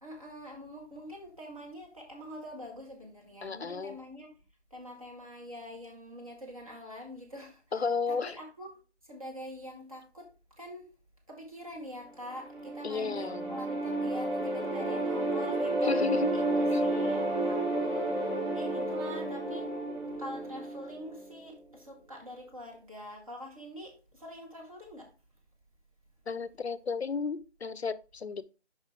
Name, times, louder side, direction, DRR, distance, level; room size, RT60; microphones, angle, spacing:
voice 1, 0.0-4.3 4.7-7.6 8.1-8.7 9.1-10.3 10.6-10.9 11.3-16.0 16.3-19.7 20.2-25.1, equal, 30° right, 1.8 m, -45 dB
voice 2, 3.4-4.0 7.7-8.4 12.8-13.6 15.8-16.4 16.7-16.8 26.3-28.4, left 5 dB, 70° left, 0.6 m, -33 dB
sound 1, 12.2-21.4, right 1 dB, 50° right, 3.8 m, -31 dB
6.8 x 5.5 x 3.4 m
figure-of-eight pair, 175°, 34 cm